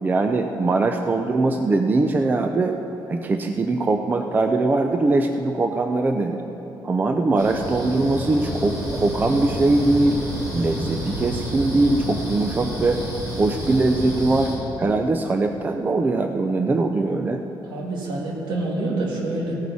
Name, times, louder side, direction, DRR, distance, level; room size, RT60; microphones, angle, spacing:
voice 1, 0.0-2.8 3.1-6.4 6.8-10.2 10.5-13.0 13.4-14.5 14.8-17.4, right 2 dB, 20° right, 5 dB, 0.5 m, -21 dB
sound 1, 7.4-14.6, equal, 45° right, 3.0 m, -30 dB
voice 2, 17.6-19.6, right 2 dB, 70° right, -2 dB, 2.4 m, -27 dB
17.0 x 9.3 x 4.2 m, 3.0 s
cardioid pair, 155°, 8 cm